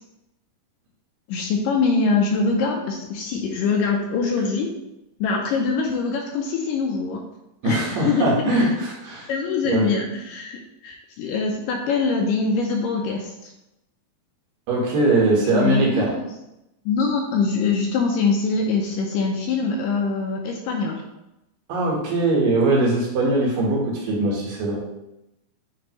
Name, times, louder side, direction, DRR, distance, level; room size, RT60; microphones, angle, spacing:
voice 1, 1.3-4.7 5.2-7.2 7.6-8.6 9.3-13.5 15.4-16.3 16.9-21.0, left 4 dB, 80° left, 1 dB, 2.0 m, -23 dB
voice 2, 7.6-9.3 9.6-9.9 14.7-16.1 21.7-24.8, right 2 dB, 70° right, -3 dB, 2.9 m, -21 dB
9.4 x 3.4 x 2.9 m, 0.90 s
omnidirectional pair, 4.2 m